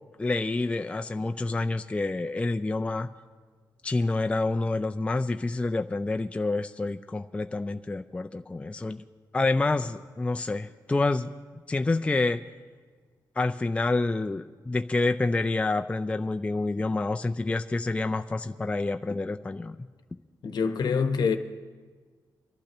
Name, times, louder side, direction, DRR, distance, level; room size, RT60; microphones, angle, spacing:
voice 1, 0.2-3.1 3.8-9.0 9.3-11.3 11.7-12.4 13.4-19.8, left 3 dB, 15° left, 0.4 m, -28 dB
voice 2, 20.4-21.4, left 5 dB, 65° left, 1.0 m, -25 dB
24.5 x 11.5 x 3.0 m
cardioid pair, 100°, 8 cm